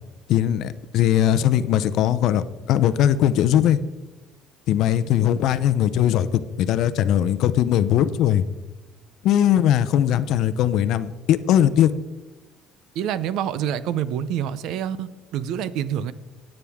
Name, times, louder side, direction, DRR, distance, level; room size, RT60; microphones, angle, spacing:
voice 1, 0.3-3.8 4.7-8.4 9.2-11.9, left 11 dB, 55° left, 14 dB, 0.6 m, -20 dB
voice 2, 12.9-16.1, right 9 dB, 60° right, 15 dB, 0.6 m, -27 dB
16.5 x 8.9 x 3.6 m, 1.1 s
cardioid pair, 175°, 0 cm